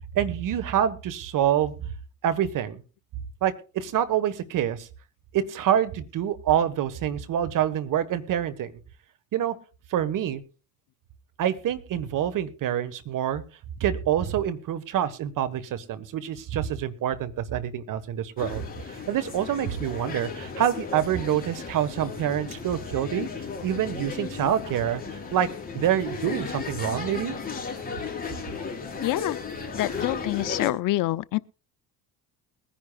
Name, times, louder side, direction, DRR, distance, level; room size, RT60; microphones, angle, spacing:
voice 1, 0.1-1.7 2.2-2.8 3.4-4.9 5.3-8.7 9.3-9.5 9.9-10.4 11.4-13.4 13.8-23.3 23.6-25.0 25.3-25.5 25.7-27.3, right 10 dB, 55° right, 1.5 m, -26 dB
sound 1, 18.4-30.7, left 5 dB, 25° left, 4.1 m, -35 dB
voice 2, 29.0-29.4 29.7-31.4, left 17 dB, 60° left, 0.6 m, -26 dB
21.5 x 10.5 x 2.4 m
supercardioid pair, 95°, 38 cm